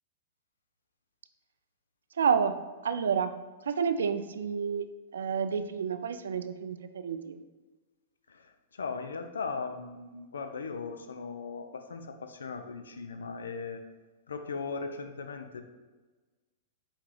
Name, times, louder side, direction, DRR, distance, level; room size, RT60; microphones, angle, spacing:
voice 1, 2.2-2.6 2.8-3.3 3.7-4.9 5.1-7.4, right 6 dB, 85° right, 10 dB, 0.3 m, -29 dB
voice 2, 8.3-13.8 14.3-15.6, left 4 dB, 90° left, 7 dB, 0.4 m, -38 dB
4.4 x 2.9 x 3.8 m, 1.3 s
hypercardioid pair, 120°, 0 cm